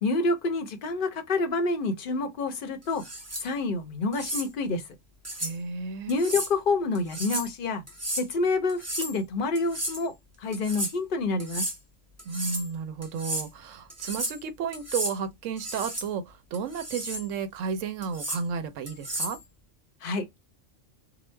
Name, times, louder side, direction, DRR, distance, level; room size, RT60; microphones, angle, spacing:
voice 1, 0.0-3.0 3.4-4.8 6.1-7.8 8.1-10.1 10.4-11.7 20.0-20.4, left 3 dB, 55° left, 0.7 m, -28 dB
sound 1, 2.9-3.5 4.1-4.5 5.2-5.5 6.1-6.5 6.9-7.5 7.9-8.3 8.7-9.2 9.5-10.0 10.5-10.9 11.4-11.8 12.2-12.7 13.0-13.5 13.9-14.4 14.7-15.2 15.6-16.1 16.5-17.2 18.0-18.4 18.9-19.4, right 1 dB, 20° right, 0.5 m, -33 dB
voice 2, 5.4-6.1 12.3-19.4, right 6 dB, 80° right, 1.0 m, -33 dB
2.9 x 2.0 x 3.1 m
omnidirectional pair, 1.3 m